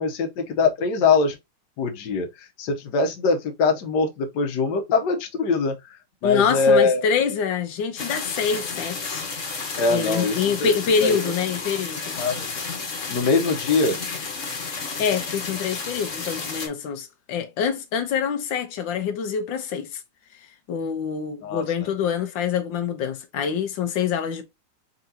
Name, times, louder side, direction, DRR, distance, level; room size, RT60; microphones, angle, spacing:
voice 1, 0.0-1.4 1.8-2.3 2.6-5.7 6.2-7.0 9.8-10.7 11.0-11.2 12.2-12.5 13.1-14.0 21.4-21.6, left 4 dB, 70° left, 1.5 m, -22 dB
voice 2, 6.2-9.2 9.9-12.2 15.0-20.0 20.4-24.4, left 7 dB, 90° left, 1.5 m, -25 dB
sound 1, 8.0-16.7, left 4 dB, 45° left, 1.5 m, -32 dB
4.6 x 3.9 x 2.8 m
omnidirectional pair, 2.0 m